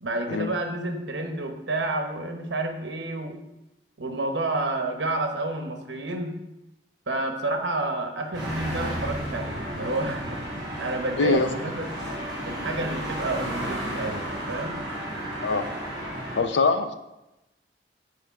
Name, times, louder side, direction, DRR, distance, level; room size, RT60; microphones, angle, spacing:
voice 1, 0.0-3.4 4.0-6.4 7.1-11.9 12.4-14.8, right 2 dB, 80° right, 4 dB, 1.1 m, -30 dB
sound 1, 8.3-16.4, right 1 dB, 25° right, 3.1 m, -33 dB
voice 2, 11.2-11.5 15.4-15.6 16.4-16.9, left 3 dB, 85° left, 8 dB, 0.6 m, -23 dB
8.7 x 4.6 x 4.6 m, 0.94 s
head